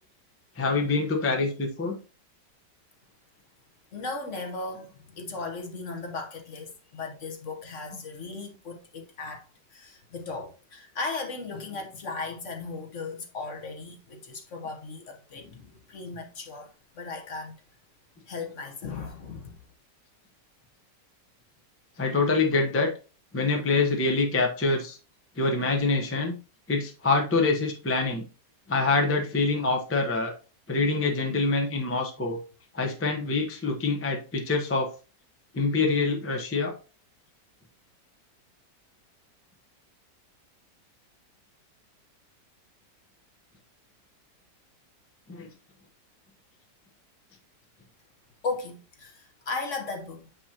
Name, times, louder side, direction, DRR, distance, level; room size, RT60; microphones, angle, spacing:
voice 1, 0.6-2.0 22.0-22.9 23.3-25.0 25.4-26.3 26.7-28.3 28.7-30.3 30.7-32.4 32.7-34.9 35.5-36.7 45.3-45.5, left 3 dB, 15° left, 0.4 m, -25 dB
voice 2, 3.9-17.6 18.3-19.6 48.4-50.3, left 3 dB, 50° left, 1.2 m, -37 dB
7.2 x 5.4 x 2.8 m
omnidirectional pair, 1.9 m